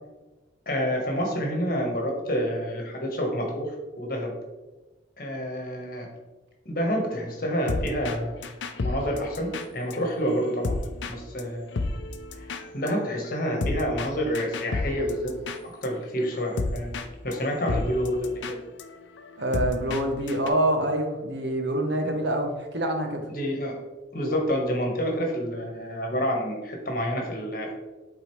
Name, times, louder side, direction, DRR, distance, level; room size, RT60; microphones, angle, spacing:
voice 1, 0.7-3.7 4.0-4.3 5.2-6.1 6.6-8.3 8.8-10.7 11.1-11.7 12.7-15.3 15.8-16.9 17.2-18.6 23.3-23.7 24.1-27.7, equal, 50° left, 0 dB, 1.3 m, -28 dB
sound 1, 7.7-8.2 8.4-11.1 11.4-11.5 11.7-15.9 16.2-17.1 17.3-17.4 17.7-20.0 20.3-20.5, left 3 dB, 75° left, 0.5 m, -31 dB
voice 2, 19.4-23.2, right 1 dB, 70° right, 4 dB, 1.0 m, -26 dB
8.1 x 3.8 x 3.2 m, 1.2 s
head